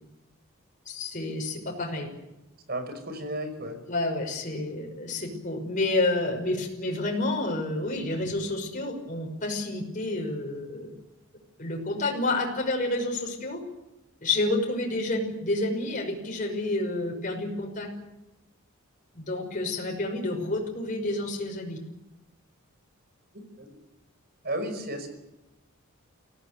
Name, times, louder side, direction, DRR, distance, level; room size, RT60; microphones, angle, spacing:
voice 1, 0.9-2.1 3.9-10.9 11.6-13.6 14.2-17.9 19.1-21.8, left 2 dB, 35° left, 1 dB, 5.7 m, -29 dB
voice 2, 2.7-3.8 23.6-23.8 24.4-25.1, right 1 dB, 45° right, 7 dB, 5.5 m, -33 dB
24.5 x 17.5 x 9.3 m, 0.94 s
head